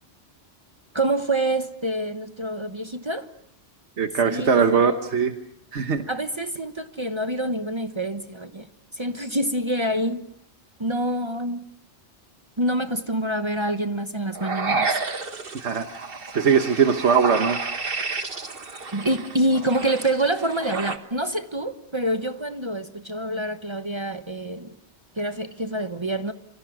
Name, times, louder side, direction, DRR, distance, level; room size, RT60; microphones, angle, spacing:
voice 1, 0.9-3.3 4.2-5.0 6.1-10.2 10.8-11.6 12.6-15.0 18.9-24.7 25.2-26.3, right 1 dB, 25° right, 1.1 m, -26 dB
voice 2, 4.0-5.4 5.7-6.0 15.5-16.0 16.3-17.6, right 6 dB, 90° right, 1.5 m, -20 dB
sound 1, 14.3-21.0, right 4 dB, 55° right, 1.7 m, -30 dB
27.0 x 26.0 x 6.2 m
omnidirectional pair, 1.1 m